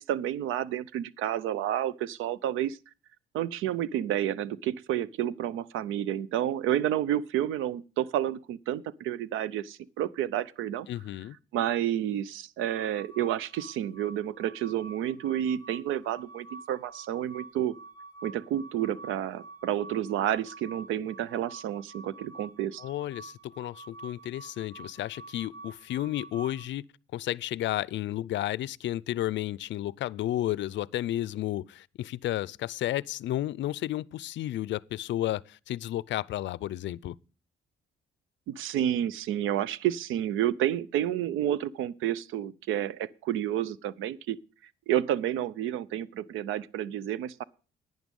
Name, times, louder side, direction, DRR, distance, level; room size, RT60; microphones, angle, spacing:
voice 1, 0.0-2.8 3.3-10.9 11.5-17.7 18.2-22.8 38.5-44.4 44.9-47.4, right 11 dB, 90° right, 0.6 m, -30 dB
voice 2, 10.9-11.4 22.8-26.8 27.1-37.2, left 14 dB, 70° left, 0.5 m, -32 dB
sound 1, 12.6-26.6, right 3 dB, 55° right, 3.1 m, -48 dB
11.0 x 9.4 x 5.3 m
cardioid pair, 90°, 20 cm